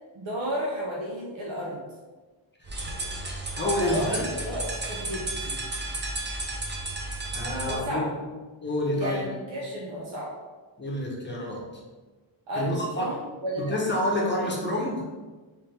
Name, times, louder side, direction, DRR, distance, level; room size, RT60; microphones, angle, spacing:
voice 1, 0.1-1.8 3.8-5.6 7.6-8.1 8.9-10.3 12.5-13.8 14.4-14.5, equal, 75° right, -4 dB, 0.8 m, -32 dB
sound 1, 2.6-7.8, right 2 dB, 25° right, 0.5 m, -33 dB
voice 2, 3.6-4.3 7.3-8.2 8.6-9.2 10.8-11.7 12.6-13.2 13.6-15.0, left 1 dB, 25° left, -3 dB, 0.8 m, -28 dB
3.3 x 3.2 x 3.2 m, 1.3 s
wide cardioid pair, 125°, 47 cm